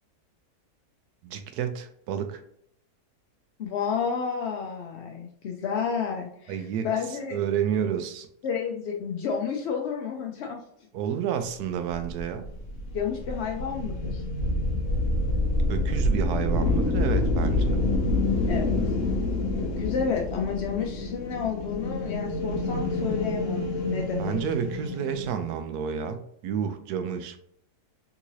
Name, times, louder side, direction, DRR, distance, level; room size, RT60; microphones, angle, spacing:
voice 1, 1.2-2.4 6.5-6.9 7.3-8.3 10.9-12.5 15.7-17.8 24.2-27.4, right 8 dB, 80° right, 8 dB, 1.1 m, -30 dB
voice 2, 3.6-7.4 8.4-10.6 12.9-14.2 18.5-18.7 19.6-24.4, left 6 dB, 70° left, 0 dB, 0.6 m, -31 dB
sound 1, 11.9-25.3, left 2 dB, 45° left, 1.1 m, -27 dB
3.7 x 3.0 x 2.6 m, 0.69 s
omnidirectional pair, 1.7 m